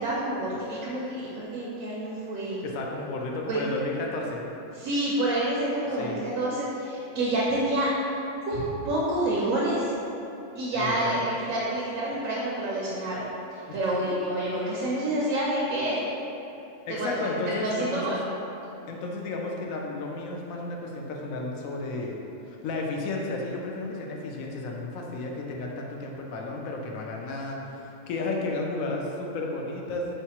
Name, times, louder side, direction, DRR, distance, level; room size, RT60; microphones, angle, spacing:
voice 1, 0.0-2.6 3.5-3.6 4.8-7.9 8.4-9.9 10.5-13.3 13.7-16.0 16.9-17.1 17.6-18.1, right 1 dB, 90° right, -7 dB, 1.1 m, -28 dB
voice 2, 2.6-4.4 6.0-6.2 10.7-11.2 13.7-13.8 16.9-18.2 18.9-22.2 22.5-30.1, left 2 dB, 80° left, -1 dB, 1.0 m, -33 dB
4.5 x 3.2 x 2.9 m, 2.9 s
omnidirectional pair, 1.4 m